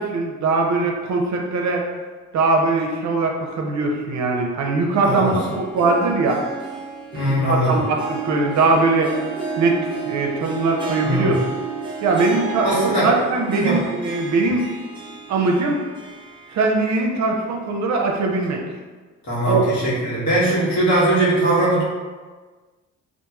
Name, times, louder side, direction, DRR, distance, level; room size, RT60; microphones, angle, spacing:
voice 1, 0.0-1.8 2.3-6.4 7.5-9.1 9.6-11.4 12.0-14.7 15.3-15.8 16.5-18.6 19.4-19.7, right 3 dB, 65° right, 1 dB, 0.5 m, -21 dB
voice 2, 5.0-5.3 7.1-7.8 11.0-11.3 12.6-13.1 13.6-13.8 19.2-21.8, right 1 dB, 65° left, -8 dB, 1.3 m, -20 dB
Harp, 5.0-17.1 17.5-17.6 18.4-18.5, right 5 dB, 15° right, 0.5 m, -32 dB
2.8 x 2.5 x 2.3 m, 1.4 s
cardioid pair, 90°, 30 cm